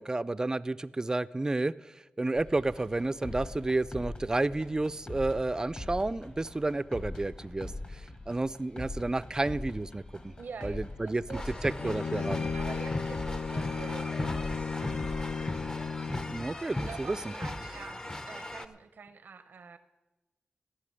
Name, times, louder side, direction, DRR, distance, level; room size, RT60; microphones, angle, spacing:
voice 1, 0.0-10.3 10.6-11.2 11.8-12.5 16.3-17.3, right 2 dB, 20° right, 15 dB, 0.3 m, -31 dB
sound 1, 2.4-16.2, left 2 dB, 40° left, 1.5 m, -42 dB
voice 2, 10.4-11.6 12.1-12.3 12.5-15.3 16.8-19.8, right 5 dB, 90° right, 11 dB, 0.7 m, -46 dB
sound 2, 11.3-18.7, left 1 dB, 20° left, 0.6 m, -38 dB
Bowed string instrument, 11.8-16.5, left 5 dB, 60° left, 0.3 m, -35 dB
14.0 x 5.8 x 9.8 m, 1.1 s
wide cardioid pair, 115°, 3 cm